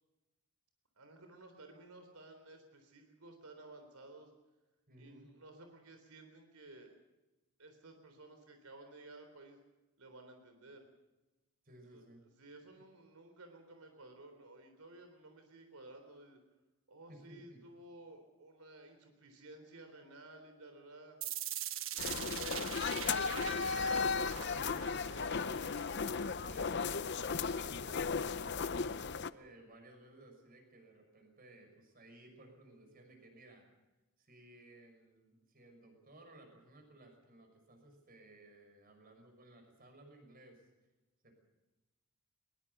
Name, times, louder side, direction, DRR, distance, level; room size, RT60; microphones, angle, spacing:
voice 1, 1.0-4.3 5.0-7.0 7.6-9.6 10.0-10.9 11.9-12.0 12.4-16.4 16.9-21.2 21.9-23.6, right 2 dB, 85° right, 6 dB, 3.8 m, -55 dB
voice 2, 4.9-5.3 11.6-12.2 17.1-17.6 24.3-25.3 26.4-27.0 27.5-33.7 34.2-40.7 41.2-41.3, right 1 dB, 40° right, 5 dB, 6.1 m, -58 dB
sound 1, 21.2-27.2, right 11 dB, 60° right, 1.3 m, -43 dB
sound 2, 22.0-29.3, left 5 dB, 50° left, 0.6 m, -35 dB
21.5 x 21.5 x 6.9 m, 1.1 s
head